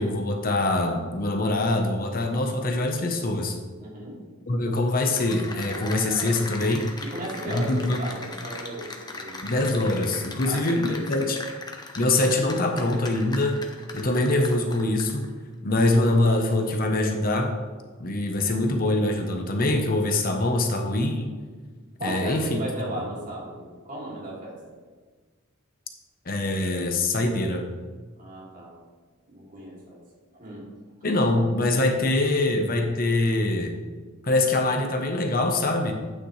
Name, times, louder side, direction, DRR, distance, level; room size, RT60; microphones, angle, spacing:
voice 1, 0.0-3.6 4.5-6.8 7.5-8.0 9.4-11.4 11.9-13.7 13.9-15.3 15.6-17.6 18.0-21.3 22.0-22.6 26.2-27.7 31.0-33.7 34.2-35.9, left 2 dB, 45° left, 3 dB, 1.0 m, -24 dB
voice 2, 3.8-4.2 7.0-9.4 10.4-11.0 22.0-24.6 28.2-28.7 29.3-30.0 30.3-30.7, right 1 dB, 40° right, -4 dB, 2.9 m, -35 dB
Cheering / Applause, 4.9-15.3, left 3 dB, 20° left, 1.0 m, -38 dB
11.0 x 8.9 x 3.3 m, 1.4 s
head